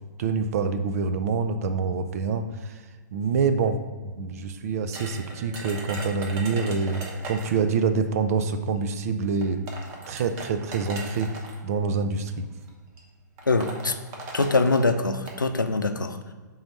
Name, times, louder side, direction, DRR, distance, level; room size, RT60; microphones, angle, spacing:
voice 1, 0.2-2.8 3.1-3.8 4.0-9.6 10.1-11.3 11.6-12.5, right 5 dB, 50° right, 9 dB, 0.6 m, -26 dB
sound 1, 4.9-7.7 8.8-8.9 9.4-11.6 12.5-12.7 13.0-13.1 13.4-15.4, right 3 dB, 30° right, 1.1 m, -38 dB
voice 2, 13.5-14.0 14.3-16.3, left 3 dB, 85° left, 7 dB, 0.6 m, -23 dB
4.5 x 3.9 x 5.4 m, 1.4 s
figure-of-eight pair, 115°, 10 cm